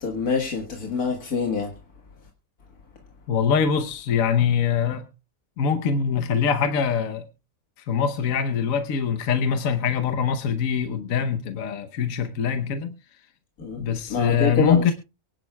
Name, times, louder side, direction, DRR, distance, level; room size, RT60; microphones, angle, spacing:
voice 1, 0.0-1.7 13.6-13.8 14.1-14.9, left 5 dB, 85° left, 2.1 m, -25 dB
voice 2, 3.3-5.0 5.6-7.3 7.8-12.9 13.8-14.9, left 7 dB, 70° left, 1.3 m, -23 dB
23.5 x 10.5 x 2.2 m
omnidirectional pair, 1.5 m